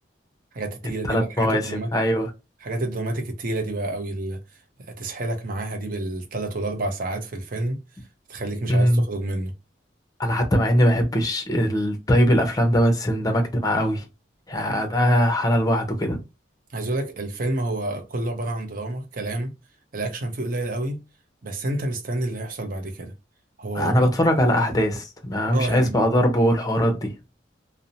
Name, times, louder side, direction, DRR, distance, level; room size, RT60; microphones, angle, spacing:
voice 1, 0.5-1.9 2.6-4.4 4.8-7.8 8.3-9.5 16.7-19.5 19.9-21.0 21.4-23.1 23.6-24.1 25.5-26.0, right 2 dB, 50° right, 0.6 m, -29 dB
voice 2, 1.0-2.3 8.7-9.0 10.2-14.0 14.5-16.2 23.7-27.1, equal, 20° left, 0.6 m, -21 dB
2.6 x 2.0 x 2.6 m
head